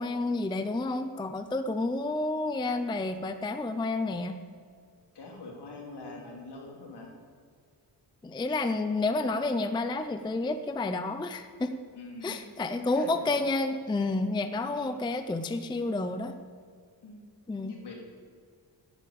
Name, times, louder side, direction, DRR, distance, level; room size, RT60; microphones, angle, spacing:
voice 1, 0.0-4.4 8.2-11.8 12.2-16.3 17.5-17.8, left 2 dB, 10° left, 9 dB, 0.4 m, -30 dB
voice 2, 5.1-7.1 11.9-12.5 12.7-13.4 14.7-15.0 17.0-17.3 17.6-17.9, left 3 dB, 70° left, -1 dB, 3.0 m, -44 dB
10.0 x 8.5 x 8.5 m, 2.1 s
wide cardioid pair, 170°, 43 cm